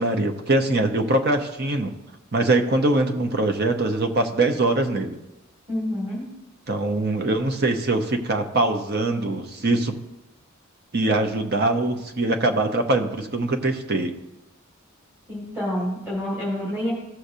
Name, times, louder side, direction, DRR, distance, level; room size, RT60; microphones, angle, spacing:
voice 1, 0.0-1.9 2.3-5.2 6.7-10.0 10.9-14.1, right 2 dB, 50° right, 6 dB, 0.9 m, -22 dB
voice 2, 5.7-6.3 15.3-16.9, left 1 dB, 10° right, -8 dB, 2.7 m, -28 dB
16.0 x 6.5 x 2.8 m, 0.94 s
head